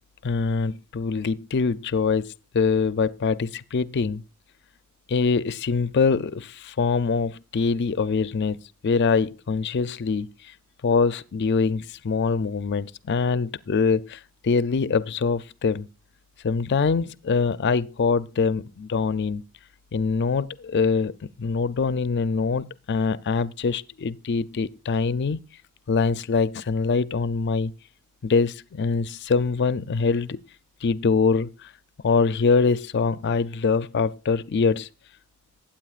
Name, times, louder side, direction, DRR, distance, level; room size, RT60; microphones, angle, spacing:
voice 1, 0.2-4.2 5.1-8.6 8.8-10.3 10.8-15.9 16.4-19.4 19.9-21.1 21.4-25.4 25.9-27.7 28.2-30.4 30.8-31.7 32.0-34.9, left 4 dB, 50° left, 0.4 m, -24 dB
20.0 x 8.9 x 2.4 m
head